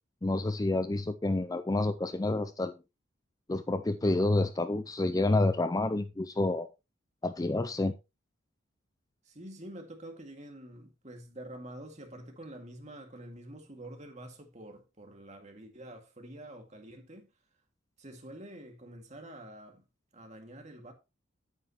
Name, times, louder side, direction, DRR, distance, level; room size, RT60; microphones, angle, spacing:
voice 1, 0.2-2.8 3.5-6.7 7.2-7.9, left 2 dB, 20° left, 0.4 m, -29 dB
voice 2, 9.2-17.3 18.0-19.8 20.1-20.9, right 1 dB, 35° right, 2.1 m, -47 dB
9.2 x 9.1 x 3.0 m
head